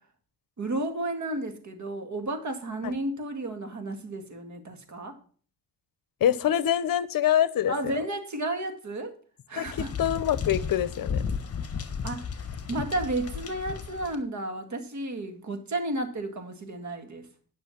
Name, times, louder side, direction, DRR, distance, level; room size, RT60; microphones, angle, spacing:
voice 1, 0.6-5.2 7.7-9.2 9.5-9.9 12.0-12.3 12.7-17.3, right 2 dB, 50° right, 6 dB, 2.1 m, -32 dB
voice 2, 6.2-7.9 9.6-11.2, left 10 dB, 65° left, 17 dB, 0.8 m, -25 dB
sound 1, 9.7-14.1, left 6 dB, 40° left, 1.3 m, -34 dB
10.0 x 6.1 x 5.9 m, 0.44 s
cardioid pair, 95°, 38 cm